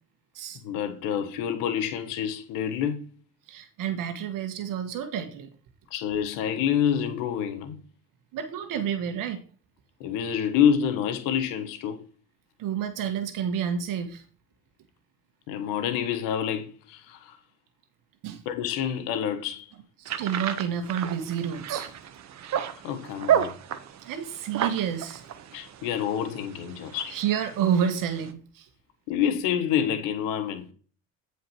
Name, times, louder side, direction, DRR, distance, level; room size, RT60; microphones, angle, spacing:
voice 1, 0.6-3.0 5.9-7.8 10.0-12.0 15.5-17.4 18.4-19.7 22.8-23.5 25.5-27.2 29.1-30.7, left 9 dB, 90° left, 1.5 m, -27 dB
voice 2, 3.5-5.5 8.3-9.4 12.6-14.2 18.2-18.4 20.0-21.9 24.0-25.2 27.1-28.7, right 8 dB, 75° right, 1.6 m, -29 dB
sound 1, 20.1-28.3, right 9 dB, 55° right, 1.2 m, -32 dB
9.6 x 5.1 x 4.4 m
supercardioid pair, 85°, 33 cm